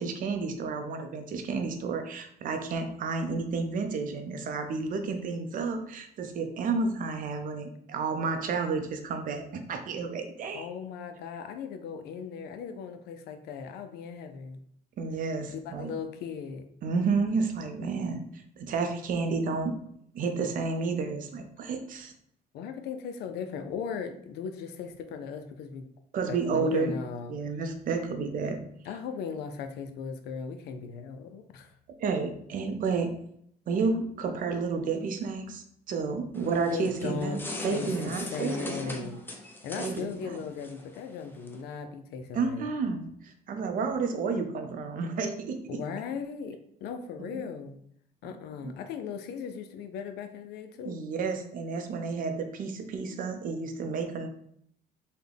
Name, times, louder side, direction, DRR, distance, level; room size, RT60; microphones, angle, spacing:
voice 1, 0.0-10.7 15.0-16.0 16.8-18.2 18.6-19.7 20.1-22.1 26.1-26.9 27.3-28.6 32.0-33.1 33.7-37.4 37.6-39.1 39.8-40.3 42.3-45.8 47.2-47.4 48.6-48.7 50.8-54.3, right 4 dB, 55° right, 6 dB, 0.5 m, -31 dB
voice 2, 10.5-14.6 15.5-16.7 22.5-25.9 26.3-27.4 28.8-31.7 36.7-39.2 39.6-42.7 45.7-47.8 48.2-51.1, left 6 dB, 75° left, 8 dB, 0.4 m, -38 dB
sound 1, 36.3-41.6, left 1 dB, 10° left, 0.5 m, -40 dB
3.7 x 2.2 x 3.4 m, 0.68 s
cardioid pair, 110°, 17 cm